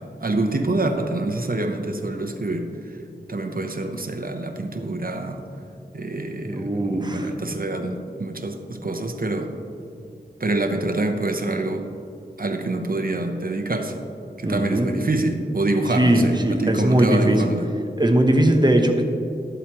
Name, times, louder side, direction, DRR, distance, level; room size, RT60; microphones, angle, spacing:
voice 1, 0.0-3.0 3.3-5.4 5.9-9.5 10.4-11.9 12.4-14.0 14.4-17.7, right 2 dB, 55° right, 5 dB, 0.8 m, -26 dB
voice 2, 6.5-7.3 14.4-14.9 15.9-17.4 18.0-19.0, right 1 dB, 25° right, 4 dB, 0.9 m, -19 dB
13.0 x 7.9 x 3.0 m, 2.6 s
wide cardioid pair, 60°, 18 cm